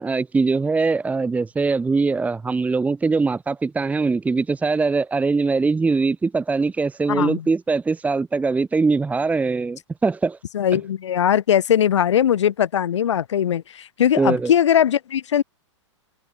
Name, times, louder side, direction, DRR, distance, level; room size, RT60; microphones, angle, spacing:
voice 1, 0.0-10.4 14.2-14.5, right 4 dB, 10° right, 1.5 m, -22 dB
voice 2, 7.1-7.5 10.5-15.4, left 9 dB, 70° left, 4.4 m, -20 dB
open air
hypercardioid pair, 120°, 16 cm